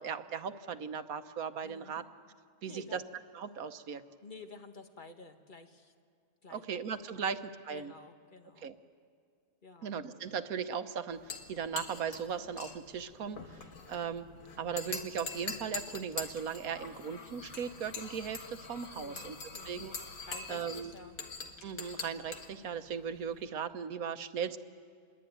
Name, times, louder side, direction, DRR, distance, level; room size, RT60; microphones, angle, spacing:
voice 1, 0.0-2.0 2.6-3.0 3.3-4.0 6.5-7.9 8.6-8.7 9.8-13.6 13.9-14.3 14.6-19.4 19.6-19.9 20.5-20.9 21.6-24.6, right 7 dB, 85° right, 10 dB, 1.4 m, -38 dB
voice 2, 1.6-2.1 2.6-3.0 4.2-5.9 6.4-6.6 7.1-7.3 7.7-8.7 9.6-10.0 18.9-19.8 20.3-21.2, left 3 dB, 35° left, 6 dB, 1.5 m, -51 dB
sound 1, 11.1-23.5, left 4 dB, 70° left, 2.1 m, -44 dB
26.5 x 21.5 x 9.3 m, 2.2 s
omnidirectional pair, 1.5 m